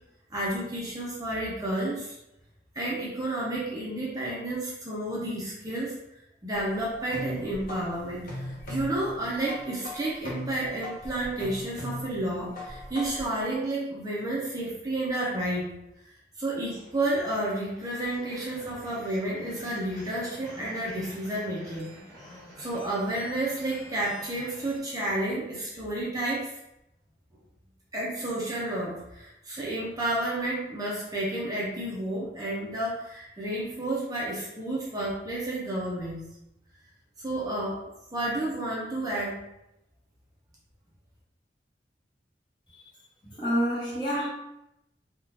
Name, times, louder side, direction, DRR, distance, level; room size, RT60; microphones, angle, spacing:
voice 1, 0.3-2.1 2.7-6.0 6.4-15.7 16.4-21.9 22.6-26.5 27.9-36.2 37.2-39.4, right 1 dB, 20° right, 0.6 m, -31 dB
sound 1, 6.5-13.4, left 1 dB, 55° left, 0.7 m, -39 dB
sound 2, 16.7-24.8, equal, ahead, 1.5 m, -48 dB
voice 2, 43.2-44.3, equal, 25° left, 1.0 m, -28 dB
3.6 x 2.3 x 2.7 m
head